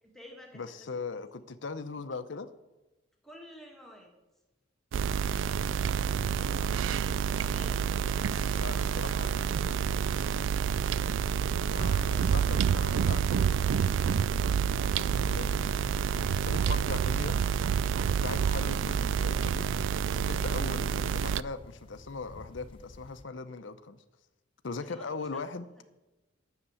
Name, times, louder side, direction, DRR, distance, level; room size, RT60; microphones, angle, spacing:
voice 1, 0.0-0.8 1.1-1.2 3.2-4.1 7.3-9.8 24.8-25.4 25.8-25.9, equal, ahead, 0 dB, 1.6 m, -51 dB
voice 2, 0.5-2.5 6.4-6.8 8.5-9.4 11.7-13.5 14.8-15.7 16.1-17.4 17.9-19.7 20.1-24.0 24.6-25.7, left 4 dB, 70° left, 11 dB, 0.6 m, -40 dB
sound 1, 4.9-21.4, right 7 dB, 70° right, 0.3 m, -28 dB
sound 2, 11.6-23.2, left 2 dB, 25° left, 0.4 m, -48 dB
9.6 x 6.7 x 8.6 m, 1.1 s
head